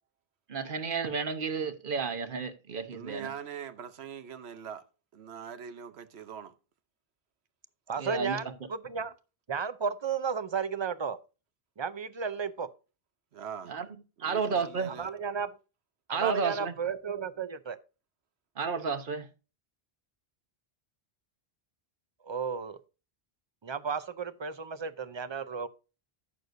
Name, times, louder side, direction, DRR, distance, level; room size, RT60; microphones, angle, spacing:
voice 1, 0.5-3.3 8.0-8.4 13.7-14.9 16.1-16.8 18.5-19.3, right 5 dB, 55° right, 1.2 m, -32 dB
voice 2, 2.9-4.8 5.1-6.5 13.3-13.7 14.2-15.1, right 8 dB, 85° right, 1.1 m, -42 dB
voice 3, 7.9-9.1 9.5-11.2 11.8-12.7 15.0-15.5 16.1-17.8 22.3-22.8 23.6-25.7, right 6 dB, 35° right, 0.5 m, -33 dB
14.0 x 6.6 x 2.6 m
omnidirectional pair, 1.1 m